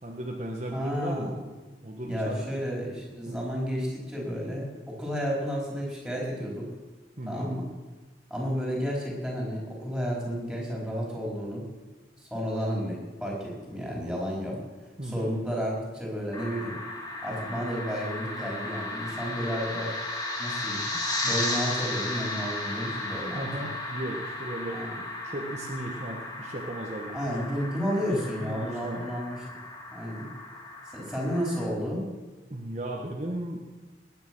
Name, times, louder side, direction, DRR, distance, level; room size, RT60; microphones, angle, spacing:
voice 1, 0.0-1.3 1.8-2.5 3.3-3.4 7.2-7.5 15.0-15.3 20.9-21.0 23.3-24.8 25.2-27.3 28.4-29.0 32.5-33.6, right 1 dB, 40° right, -1 dB, 1.4 m, -36 dB
voice 2, 0.7-1.4 2.0-6.7 7.3-7.7 8.3-11.6 12.2-14.6 15.0-16.8 17.2-19.9 20.4-20.8 21.2-23.5 24.7-24.9 27.1-29.4 29.9-30.3 30.9-32.1, equal, ahead, -3 dB, 4.7 m, -31 dB
sound 1, 16.3-31.7, left 2 dB, 20° left, 2.3 m, -35 dB
20.5 x 9.5 x 6.2 m, 1.2 s
head